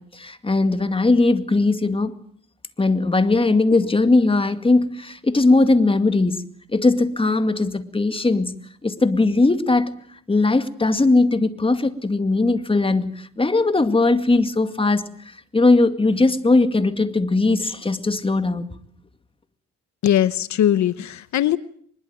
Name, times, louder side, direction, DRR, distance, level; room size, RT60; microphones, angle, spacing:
voice 1, 0.0-2.1 2.8-9.9 10.3-15.0 15.5-18.7, left 2 dB, 20° left, 2.2 m, -19 dB
voice 2, 20.0-21.6, left 11 dB, 65° left, 1.0 m, -20 dB
24.0 x 21.5 x 9.2 m
cardioid pair, 90°, 30 cm